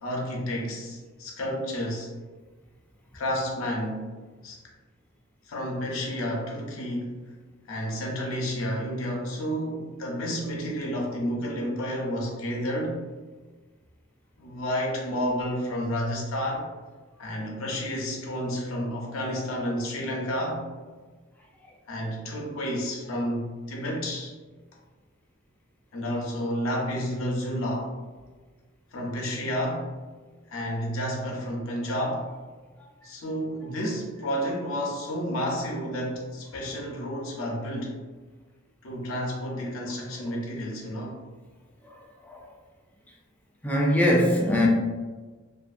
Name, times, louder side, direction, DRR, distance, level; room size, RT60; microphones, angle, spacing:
voice 1, 0.0-2.1 3.1-4.1 4.4-4.6 5.5-7.2 7.7-13.0 14.4-16.7 17.2-20.7 21.9-24.3 25.9-27.9 28.9-29.9 30.5-32.3 33.0-38.0 38.8-41.2, equal, 80° left, -1 dB, 0.6 m, -30 dB
voice 2, 43.6-44.7, equal, 10° left, -3 dB, 0.3 m, -22 dB
2.4 x 2.4 x 2.4 m, 1.3 s
head